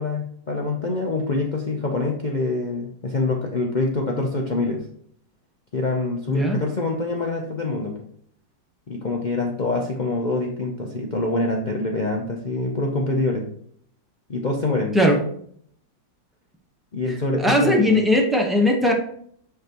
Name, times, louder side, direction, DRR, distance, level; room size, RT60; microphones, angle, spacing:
voice 1, 0.0-4.9 5.7-8.0 8.9-13.5 14.3-15.0 16.9-18.0, left 2 dB, 75° left, 0 dB, 0.4 m, -25 dB
voice 2, 6.3-6.6 14.9-15.2 17.4-18.9, left 1 dB, ahead, 0 dB, 0.5 m, -18 dB
6.6 x 5.8 x 3.0 m, 0.63 s
omnidirectional pair, 2.0 m